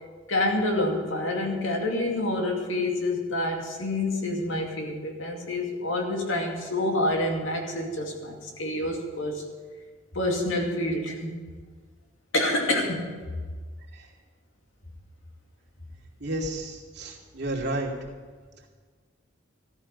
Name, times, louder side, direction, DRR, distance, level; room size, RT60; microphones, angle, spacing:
voice 1, 0.3-9.4 10.1-11.4 12.3-13.2, left 1 dB, 85° left, 1 dB, 2.5 m, -27 dB
voice 2, 16.2-17.9, right 1 dB, 55° right, -2 dB, 2.8 m, -31 dB
14.5 x 13.5 x 5.4 m, 1.5 s
head